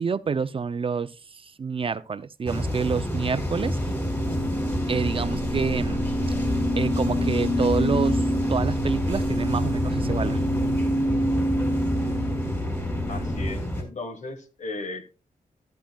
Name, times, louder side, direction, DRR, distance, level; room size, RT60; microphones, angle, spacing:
voice 1, 0.0-3.8 4.9-6.0 6.8-10.4, right 5 dB, 40° right, 0.4 m, -28 dB
sound 1, 2.5-13.8, equal, 20° left, 4.0 m, -28 dB
sound 2, 3.4-13.5, equal, 80° left, 2.3 m, -27 dB
voice 2, 13.1-15.1, left 2 dB, 55° left, 1.5 m, -36 dB
14.0 x 10.5 x 2.3 m
wide cardioid pair, 115°, 14 cm